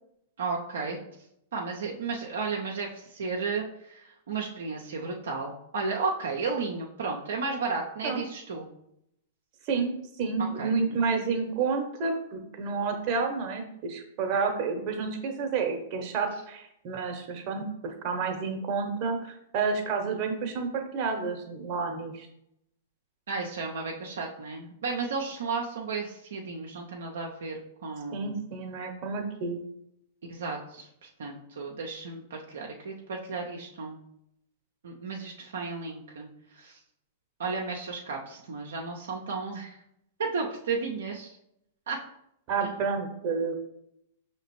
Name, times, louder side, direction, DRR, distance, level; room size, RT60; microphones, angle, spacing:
voice 1, 0.4-1.0 1.5-8.7 10.6-10.7 23.3-28.4 30.3-34.0 34.8-36.8 37.4-39.8 40.2-41.4 41.9-42.0, right 4 dB, 70° right, -1 dB, 0.6 m, -33 dB
voice 2, 9.7-22.3 28.1-29.6 42.5-43.6, right 5 dB, 40° right, 4 dB, 0.9 m, -30 dB
5.6 x 2.9 x 3.1 m, 0.77 s
figure-of-eight pair, 105°, 0 cm